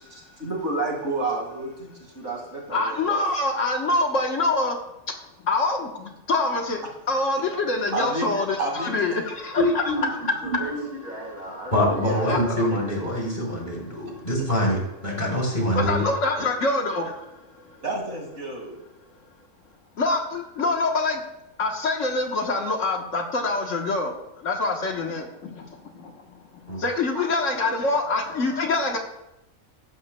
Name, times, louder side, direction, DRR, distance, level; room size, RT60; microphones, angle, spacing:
voice 1, 0.4-2.9 7.9-8.3 8.6-9.0 9.9-10.1 10.4-12.6 17.8-18.8 27.1-27.3 27.6-27.7, right 2 dB, 60° right, 1 dB, 2.4 m, -31 dB
voice 2, 2.7-4.8 5.4-9.9 10.6-10.7 12.3-12.7 14.1-14.3 15.7-17.8 20.0-21.2 21.6-29.0, left 2 dB, 70° left, 2 dB, 1.6 m, -25 dB
voice 3, 10.4-10.8 11.7-16.0 26.7-26.8, equal, 35° left, -3 dB, 3.5 m, -25 dB
14.5 x 11.5 x 2.2 m, 0.87 s
omnidirectional pair, 1.4 m